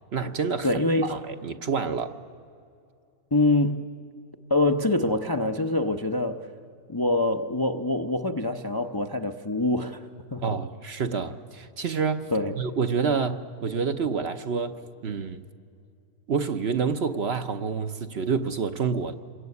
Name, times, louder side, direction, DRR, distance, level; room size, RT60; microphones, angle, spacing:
voice 1, 0.1-0.7 1.1-2.2 10.4-12.3 12.6-15.5 16.3-19.1, right 5 dB, 50° right, 8 dB, 1.0 m, -28 dB
voice 2, 0.6-1.1 3.3-3.8 4.5-6.5 6.9-10.0 10.3-10.4 12.3-12.6, left 2 dB, 25° left, 5 dB, 0.6 m, -25 dB
27.0 x 22.0 x 9.5 m, 2.4 s
omnidirectional pair, 1.5 m